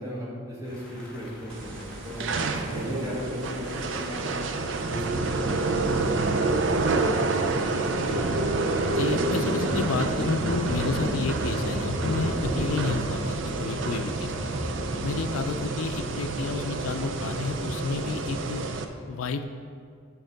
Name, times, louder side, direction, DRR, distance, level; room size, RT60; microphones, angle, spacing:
voice 1, 0.0-4.3 4.8-8.3 13.3-13.4, equal, 15° right, -6 dB, 1.5 m, -38 dB
sound 1, 0.6-16.9, equal, 5° left, 1.5 m, -36 dB
sound 2, 1.5-18.8, right 3 dB, 65° right, 0.5 m, -28 dB
voice 2, 8.9-14.3 15.0-18.7 19.1-19.5, left 4 dB, 90° left, 8 dB, 0.4 m, -30 dB
7.3 x 6.4 x 4.0 m, 2.3 s
head